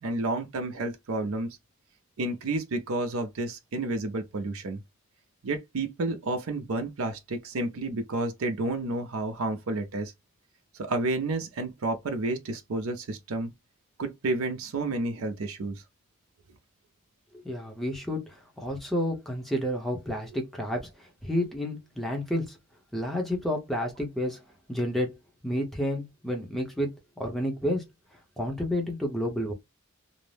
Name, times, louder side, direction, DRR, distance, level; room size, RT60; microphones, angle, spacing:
voice 1, 0.0-1.5 2.2-4.8 5.4-10.1 10.7-13.5 14.0-15.8, right 2 dB, 80° right, 0.5 m, -30 dB
voice 2, 17.3-22.6 22.9-24.4 24.7-25.2 25.4-26.9 27.2-27.9 28.4-29.5, equal, ahead, 0.7 m, -30 dB
2.6 x 2.0 x 3.1 m
head